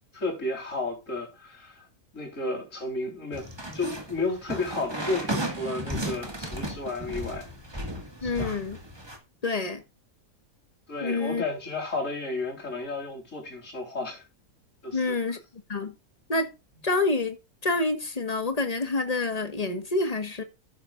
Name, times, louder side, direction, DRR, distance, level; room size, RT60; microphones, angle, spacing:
voice 1, 0.1-1.8 2.1-3.5 3.7-7.5 8.2-8.6 10.9-14.2 14.8-15.1, left 2 dB, 50° left, 4.3 m, -32 dB
sound 1, 3.3-9.2, right 1 dB, 15° right, 2.0 m, -34 dB
voice 2, 8.2-8.8 9.4-9.8 11.0-11.4 14.9-15.4 15.7-15.9 16.3-16.5 16.8-17.4 17.6-20.4, left 3 dB, 25° left, 1.5 m, -27 dB
13.5 x 9.8 x 2.5 m
omnidirectional pair, 1.7 m